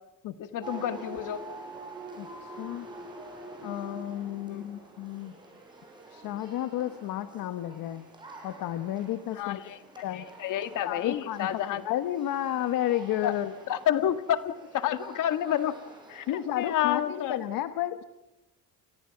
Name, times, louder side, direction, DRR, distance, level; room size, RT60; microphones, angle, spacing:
voice 1, 0.4-1.4 4.5-4.6 9.3-9.8 10.1-11.8 13.2-13.3 13.7-15.8 16.1-16.3 16.6-17.4, left 11 dB, 65° left, 9 dB, 1.9 m, -29 dB
sound 1, 0.6-17.5, right 2 dB, 15° right, 6.7 m, -47 dB
voice 2, 2.2-2.9 3.6-5.3 6.1-8.0 8.4-9.6 10.0-10.3 10.8-13.5 16.3-18.0, left 12 dB, 80° left, 9 dB, 1.3 m, -32 dB
29.5 x 29.0 x 5.9 m, 0.97 s
cardioid pair, 160°, 34 cm